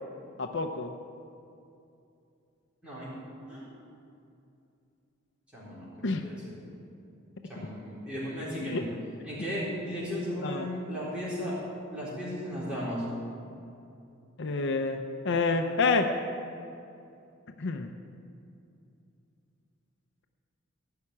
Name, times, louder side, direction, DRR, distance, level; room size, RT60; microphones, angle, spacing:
voice 1, 0.4-0.9 6.0-6.2 8.6-8.8 10.4-10.7 14.4-16.1 17.6-17.9, left 3 dB, 60° left, 5 dB, 0.7 m, -28 dB
voice 2, 2.8-3.1 3.5-3.6 5.5-6.4 7.5-8.9 9.2-11.6 11.9-13.0, equal, 5° right, -10 dB, 4.2 m, -35 dB
16.5 x 5.9 x 9.9 m, 2.6 s
head